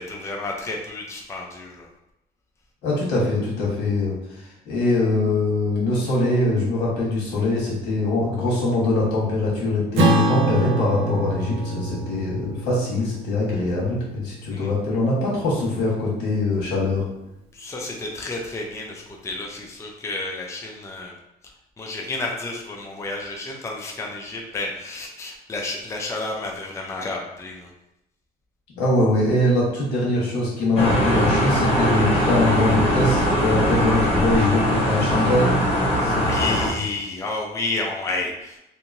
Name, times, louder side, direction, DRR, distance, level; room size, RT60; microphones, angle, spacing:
voice 1, 0.0-1.9 14.5-14.7 17.5-21.1 21.8-27.7 36.1-38.6, left 2 dB, 15° left, -1 dB, 0.5 m, -31 dB
voice 2, 2.8-17.0 28.8-35.5 36.0-36.6, left 2 dB, 80° left, -4 dB, 1.3 m, -23 dB
Acoustic guitar / Strum, 10.0-14.7, right 2 dB, 85° right, 0.7 m, -25 dB
sound 1, 30.8-36.7, equal, 35° left, 0.9 m, -21 dB
2.9 x 2.6 x 2.6 m, 0.87 s
cardioid pair, 110°, 17 cm